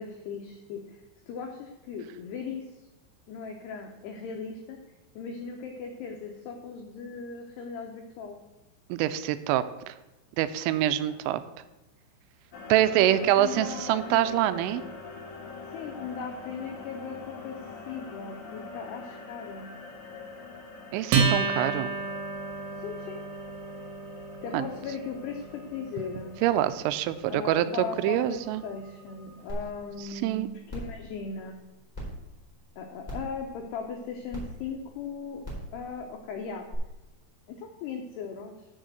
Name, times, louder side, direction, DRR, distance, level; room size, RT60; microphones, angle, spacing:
voice 1, 0.0-2.6 3.3-4.8 5.2-8.4 11.0-11.2 13.0-14.4 15.7-17.6 17.9-19.7 22.8-23.2 24.4-26.4 27.3-30.5 30.7-31.6 32.8-35.4 35.7-36.7 37.5-38.7, left 5 dB, 85° left, 2 dB, 2.3 m, -38 dB
voice 2, 8.9-9.9 10.4-11.4 12.7-14.8 20.9-21.9 24.5-24.7 26.4-27.7 28.0-28.6 30.1-30.5, right 13 dB, 85° right, 13 dB, 3.1 m, -25 dB
sound 1, 12.5-30.0, left 4 dB, 65° left, 1.9 m, -45 dB
Acoustic guitar, 21.1-28.0, right 4 dB, 70° right, 3.4 m, -31 dB
sound 2, 29.5-29.6 30.1-30.2 30.7-30.9 31.9-32.0 33.0-33.3 34.3-34.4 35.4-35.7 36.7-36.8, equal, 10° left, 2.9 m, -36 dB
7.1 x 6.5 x 7.6 m, 1.0 s
omnidirectional pair, 5.8 m